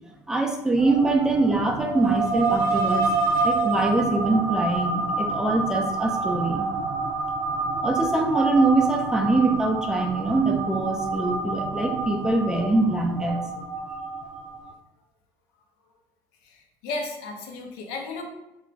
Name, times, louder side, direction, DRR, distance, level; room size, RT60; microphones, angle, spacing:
voice 1, 0.3-3.1 3.4-6.7 7.8-13.4, right 2 dB, 10° right, 2 dB, 0.3 m, -23 dB
sound 1, 0.8-14.7, right 3 dB, 85° right, 0.4 m, -28 dB
voice 2, 16.5-18.2, left 3 dB, 85° left, 2 dB, 0.6 m, -34 dB
2.3 x 2.2 x 3.7 m, 0.94 s
cardioid pair, 135°, 8 cm